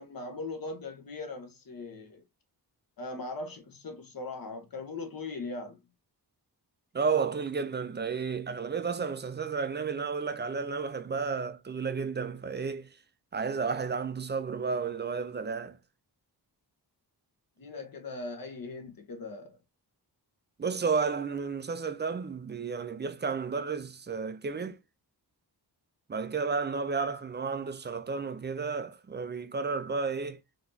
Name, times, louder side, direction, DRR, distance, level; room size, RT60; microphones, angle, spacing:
voice 1, 0.0-2.2 3.0-5.8 17.6-19.6, left 3 dB, 55° left, 1.1 m, -39 dB
voice 2, 6.9-13.0 13.3-15.8 20.6-24.8 26.1-30.4, right 5 dB, 25° right, 0.5 m, -32 dB
4.0 x 3.0 x 2.7 m
wide cardioid pair, 150°, 40 cm